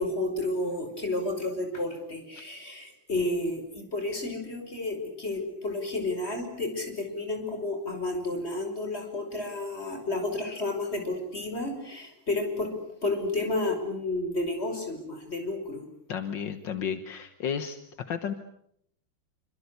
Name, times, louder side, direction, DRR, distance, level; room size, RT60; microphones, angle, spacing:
voice 1, 0.0-12.7 13.0-15.8, left 2 dB, 30° left, 5 dB, 6.0 m, -31 dB
voice 2, 16.1-17.8 18.1-18.3, left 7 dB, 75° left, 9 dB, 2.0 m, -32 dB
27.0 x 25.5 x 8.2 m, 0.71 s
omnidirectional pair, 2.0 m